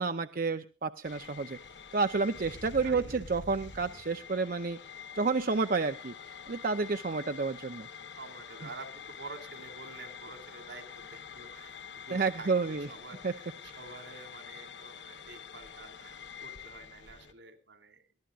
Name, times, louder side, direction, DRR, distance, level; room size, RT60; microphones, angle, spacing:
voice 1, 0.0-1.6 1.9-4.8 5.2-6.1 6.5-7.9 12.1-12.9 13.2-13.3, right 4 dB, 50° right, 8 dB, 0.6 m, -30 dB
sound 1, 1.0-17.3, left 6 dB, 75° left, 1.2 m, -47 dB
voice 2, 2.8-3.2 7.2-7.5 8.2-10.8 11.1-18.1, right 3 dB, 75° right, 8 dB, 3.1 m, -49 dB
22.5 x 14.5 x 2.4 m, 0.35 s
head